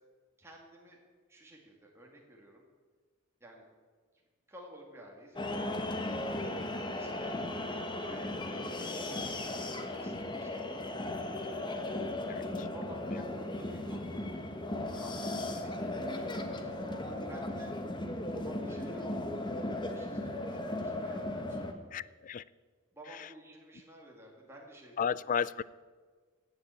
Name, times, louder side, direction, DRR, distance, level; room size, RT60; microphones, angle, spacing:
voice 1, 0.4-1.0 1.3-2.6 3.4-3.7 4.5-6.3 6.9-12.1 12.7-14.4 14.8-16.3 17.1-17.7 18.3-21.6 22.9-25.1, right 1 dB, 10° right, 2.3 m, -54 dB
sound 1, 5.4-21.7, left 1 dB, 20° left, 1.1 m, -36 dB
voice 2, 12.3-12.7 21.9-22.4 23.2-23.3 25.0-25.6, left 7 dB, 40° left, 0.3 m, -33 dB
16.0 x 7.0 x 8.4 m
head